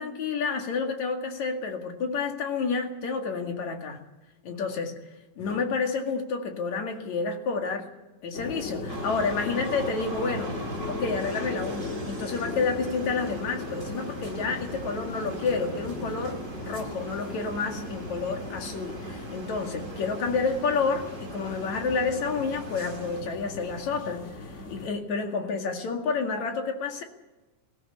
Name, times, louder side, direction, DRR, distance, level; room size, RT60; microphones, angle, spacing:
voice 1, 0.0-4.0 4.4-5.0 5.4-7.9 8.2-10.6 10.9-24.3 24.7-27.0, left 4 dB, 60° left, 4 dB, 3.2 m, -29 dB
sound 1, 8.3-24.9, left 3 dB, 40° left, 1.0 m, -38 dB
sound 2, 8.9-23.2, right 2 dB, 25° right, 1.9 m, -40 dB
19.0 x 15.5 x 9.6 m, 1.1 s
omnidirectional pair, 4.0 m